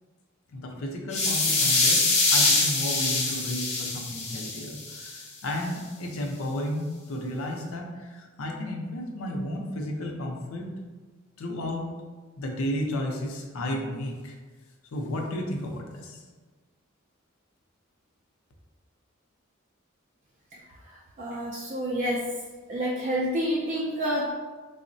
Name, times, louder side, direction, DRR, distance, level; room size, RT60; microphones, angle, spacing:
voice 1, 0.5-10.7 11.4-11.9 12.4-14.3 14.9-16.2, left 1 dB, 90° left, 1 dB, 0.5 m, -33 dB
sound 1, 1.1-5.2, left 3 dB, 30° left, 0.5 m, -24 dB
voice 2, 21.2-22.2 22.7-24.3, equal, 35° right, -4 dB, 0.3 m, -28 dB
3.5 x 2.0 x 2.6 m, 1.4 s
head